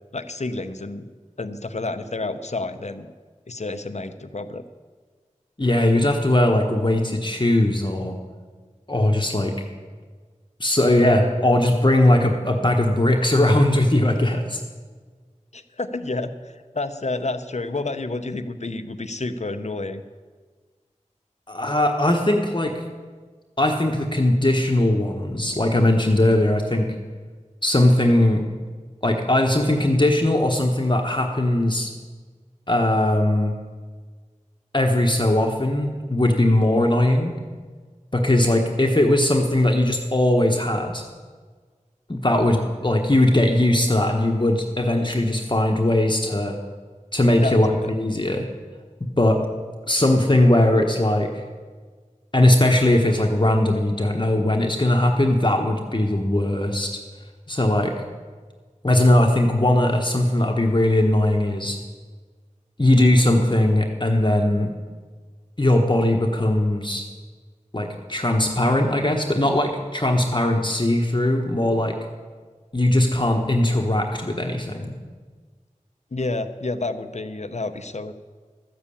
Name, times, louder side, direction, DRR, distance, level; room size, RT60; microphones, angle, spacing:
voice 1, 0.1-1.0 1.4-3.1 3.5-4.6 15.5-20.0 47.3-47.9 76.1-78.1, left 2 dB, 60° left, 9 dB, 0.8 m, -29 dB
voice 2, 5.6-8.2 8.9-9.6 10.6-14.6 21.5-22.7 23.6-26.9 27.6-28.4 29.0-31.9 32.7-33.5 34.7-37.3 38.1-41.0 42.1-46.6 47.1-48.5 49.2-49.4 49.9-51.4 52.3-57.0 57.5-57.9 58.8-61.8 62.8-64.7 65.6-67.0 67.7-72.0 72.7-74.9, left 1 dB, 35° left, 2 dB, 1.2 m, -19 dB
13.5 x 7.4 x 8.5 m, 1.5 s
wide cardioid pair, 45°, 13 cm